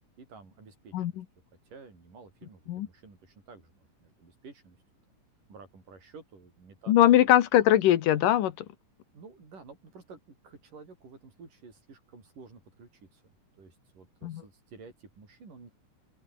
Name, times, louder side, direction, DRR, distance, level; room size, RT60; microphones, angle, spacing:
voice 1, 0.2-1.2 1.7-4.8 5.5-7.4 9.1-13.2 13.6-15.7, right 4 dB, 75° right, 8.2 m, -52 dB
voice 2, 0.9-1.2 2.7-2.9 6.9-8.7 14.2-14.4, left 12 dB, 80° left, 3.0 m, -21 dB
open air
omnidirectional pair, 3.8 m